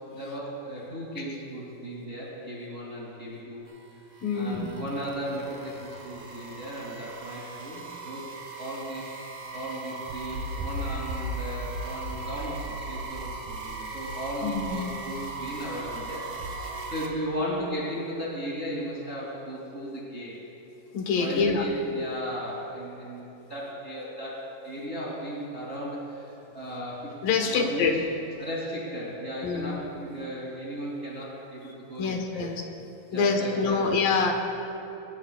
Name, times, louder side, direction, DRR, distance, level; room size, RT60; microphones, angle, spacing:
voice 1, 0.1-3.6 4.3-8.3 8.6-9.1 9.5-20.4 21.1-27.1 27.5-27.9 28.4-32.5 33.1-33.9, equal, 20° right, -7 dB, 3.0 m, -36 dB
sound 1, 3.7-17.1, right 4 dB, 45° right, 1.2 m, -40 dB
voice 2, 4.2-4.7 14.4-15.0 16.6-16.9 20.9-21.7 27.2-27.9 29.4-29.8 32.0-32.6 33.1-34.3, left 4 dB, 70° left, 3 dB, 3.0 m, -26 dB
sound 2, 10.1-16.9, equal, 80° right, 3.8 m, -37 dB
24.5 x 20.5 x 2.4 m, 2.9 s
omnidirectional pair, 4.3 m